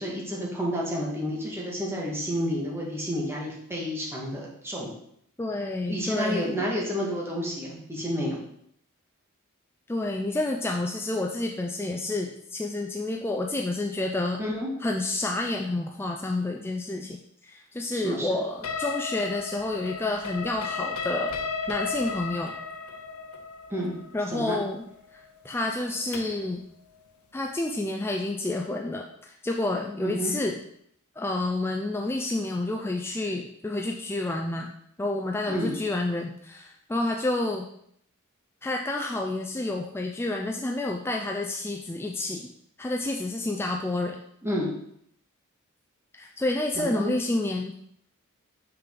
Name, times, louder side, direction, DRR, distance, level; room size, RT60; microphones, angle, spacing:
voice 1, 0.0-4.9 5.9-8.4 14.4-14.7 17.9-18.4 23.7-23.9 24.3-24.6 30.0-30.3 35.5-35.7 44.4-44.7 46.7-47.1, equal, 10° right, -4 dB, 1.6 m, -30 dB
voice 2, 5.4-6.6 9.9-14.4 14.8-21.4 21.7-22.5 24.1-24.9 25.4-26.6 27.3-30.6 31.2-34.7 35.0-37.7 38.6-42.5 42.8-44.2 46.1-47.7, left 2 dB, 10° left, 2 dB, 0.3 m, -29 dB
sound 1, 18.6-26.5, left 4 dB, 75° left, 0.7 m, -34 dB
5.7 x 5.1 x 3.8 m, 0.70 s
head